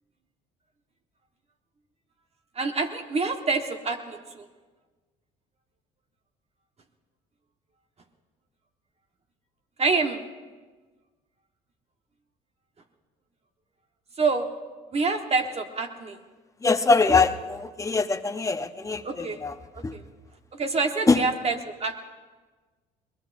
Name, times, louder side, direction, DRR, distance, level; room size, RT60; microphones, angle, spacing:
voice 1, 2.5-4.5 9.8-10.3 14.2-14.5 14.9-16.2 19.0-19.4 19.7-20.0 20.5-22.0, right 4 dB, 40° right, 5 dB, 1.4 m, -27 dB
voice 2, 16.6-19.5 19.8-19.9 21.1-21.2, left 4 dB, 20° left, 8 dB, 1.0 m, -23 dB
22.0 x 20.0 x 2.7 m, 1.3 s
supercardioid pair, 75°, 17 cm